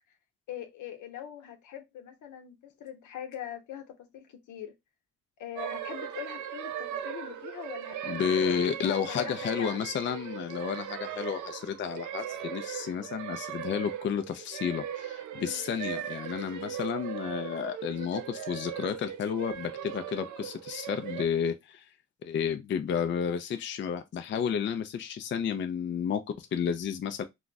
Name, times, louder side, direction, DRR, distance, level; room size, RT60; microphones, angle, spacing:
voice 1, 0.5-4.7 5.4-8.4 8.8-9.8 15.3-15.6 16.5-16.8, left 10 dB, 75° left, 0.9 m, -42 dB
sound 1, 5.6-21.2, right 10 dB, 75° right, 0.5 m, -38 dB
voice 2, 8.1-21.8 22.2-27.2, left 7 dB, 40° left, 0.4 m, -31 dB
2.3 x 2.3 x 3.8 m
cardioid pair, 90°, 30 cm